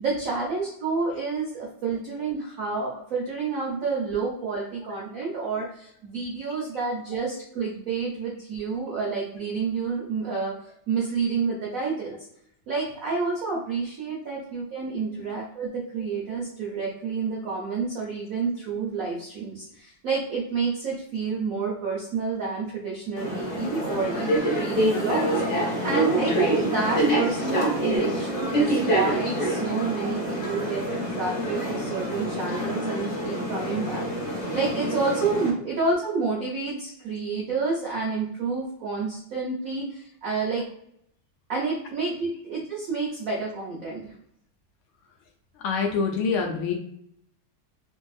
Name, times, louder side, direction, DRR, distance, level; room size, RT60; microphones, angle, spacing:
voice 1, 0.0-10.5 10.9-12.2 12.7-40.6 41.5-44.1, right 4 dB, 75° right, -4 dB, 0.7 m, -29 dB
sound 1, 23.2-35.5, right 1 dB, 65° left, 0.4 m, -26 dB
voice 2, 45.6-46.7, left 5 dB, 85° left, 1 dB, 1.6 m, -26 dB
3.4 x 2.6 x 2.3 m, 0.71 s
omnidirectional pair, 2.3 m